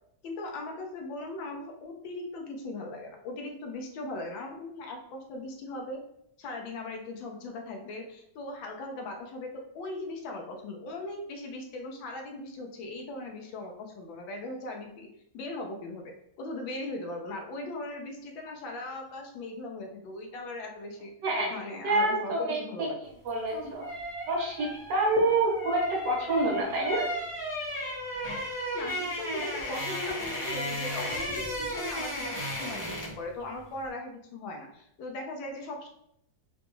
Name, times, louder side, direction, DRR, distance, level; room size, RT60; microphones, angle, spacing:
voice 1, 0.2-6.0 6.4-15.1 15.3-16.1 16.4-21.1 21.5-23.0 28.7-35.9, left 2 dB, 80° left, 2 dB, 1.4 m, -39 dB
voice 2, 21.8-22.9 23.2-23.8 24.3-27.1, right 2 dB, 70° right, -2 dB, 1.5 m, -27 dB
sound 1, 23.3-33.3 33.5-33.8, equal, 50° left, 0.3 m, -35 dB
4.0 x 2.2 x 3.0 m, 0.73 s
omnidirectional pair, 2.1 m